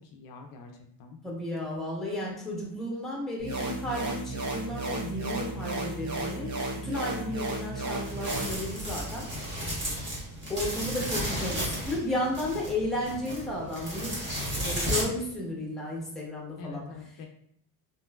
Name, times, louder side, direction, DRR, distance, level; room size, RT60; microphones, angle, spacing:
voice 1, 0.1-0.7 1.0-1.2 16.6-17.3, left 5 dB, 60° left, 3 dB, 0.5 m, -44 dB
voice 2, 1.2-9.3 10.5-14.2 14.6-16.9, left 1 dB, ahead, -3 dB, 0.7 m, -33 dB
sound 1, 3.4-8.5, right 2 dB, 50° right, 0.6 m, -34 dB
sound 2, 8.0-15.0, equal, 30° right, 1.2 m, -33 dB
2.9 x 2.5 x 2.3 m, 0.69 s
cardioid pair, 130°, 38 cm